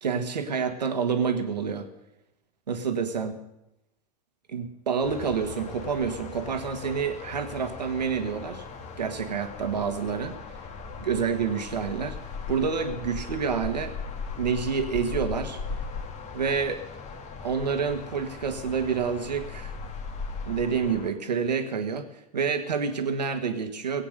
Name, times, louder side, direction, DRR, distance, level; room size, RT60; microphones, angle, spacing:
voice 1, 0.0-1.9 2.7-3.3 4.5-8.6 9.0-10.4 11.0-12.2 12.5-13.9 14.4-15.6 16.3-16.8 17.4-19.7 20.5-22.1 22.3-24.0, right 6 dB, 85° right, 7 dB, 1.7 m, -28 dB
sound 1, 5.0-21.1, left 5 dB, 35° left, 1.8 m, -38 dB
18.0 x 8.5 x 6.7 m, 0.88 s
hypercardioid pair, 95°, 21 cm